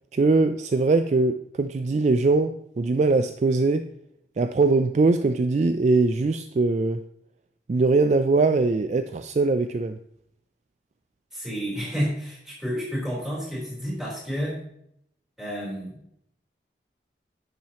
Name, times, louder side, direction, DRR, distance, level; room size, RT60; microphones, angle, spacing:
voice 1, 0.1-3.9 4.4-7.0 7.7-10.0, right 3 dB, 40° right, 9 dB, 0.3 m, -21 dB
voice 2, 11.3-14.6 15.4-15.9, equal, ahead, -6 dB, 3.8 m, -30 dB
10.5 x 7.4 x 2.9 m, 0.74 s
head